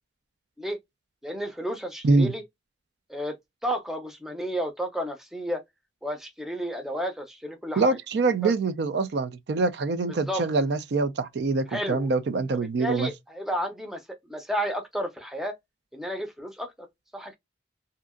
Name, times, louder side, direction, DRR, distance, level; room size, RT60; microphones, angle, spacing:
voice 1, 1.2-2.4 3.1-3.4 3.6-5.6 6.0-8.0 8.4-8.5 10.1-10.4 11.7-12.1 12.8-15.6 15.9-16.9 17.1-17.3, equal, ahead, 0.5 m, -32 dB
voice 2, 7.8-13.1, right 3 dB, 70° right, 0.4 m, -24 dB
2.7 x 2.4 x 2.3 m
head